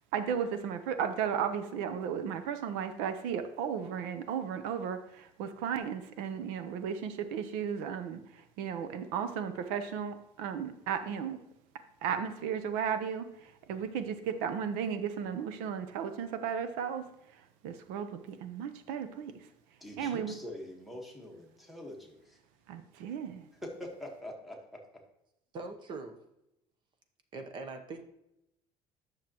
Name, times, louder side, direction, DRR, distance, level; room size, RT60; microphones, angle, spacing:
voice 1, 0.1-11.4 12.0-17.0 17.3-19.5 20.0-20.3 22.7-23.5, right 7 dB, 90° right, 10 dB, 0.8 m, -35 dB
voice 2, 19.8-22.4 23.6-24.8, left 1 dB, ahead, 1 dB, 1.3 m, -44 dB
voice 3, 25.5-26.2 27.3-28.0, right 3 dB, 35° right, 7 dB, 0.9 m, -41 dB
9.4 x 6.5 x 3.0 m, 0.85 s
cardioid pair, 160°, 13 cm